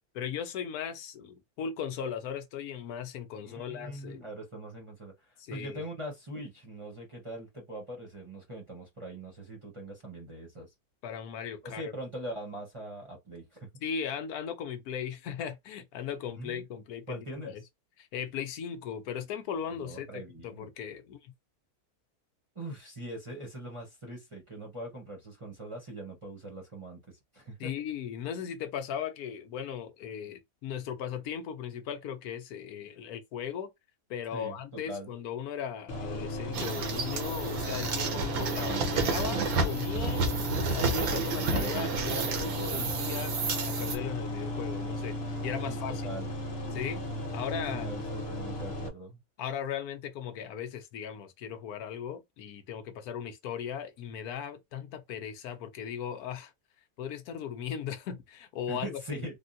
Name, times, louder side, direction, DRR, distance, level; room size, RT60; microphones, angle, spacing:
voice 1, 0.1-4.2 5.4-5.8 11.0-11.8 13.8-17.2 17.5-17.6 18.0-21.3 27.6-33.7 34.1-43.3 43.7-46.0 46.7-47.0 47.3-47.9 49.4-56.5 57.0-59.3, left 8 dB, 80° left, 1.1 m, -37 dB
voice 2, 3.4-10.7 11.6-13.7 16.3-16.6 17.1-17.5 19.7-20.7 22.5-27.7 34.3-35.1 45.6-46.3 47.7-49.2 58.7-59.4, right 1 dB, 25° right, 0.9 m, -42 dB
sound 1, 35.9-48.9, left 1 dB, 45° left, 1.0 m, -35 dB
sound 2, 36.5-44.0, right 4 dB, 70° right, 1.2 m, -31 dB
3.5 x 2.2 x 2.6 m
omnidirectional pair, 1.6 m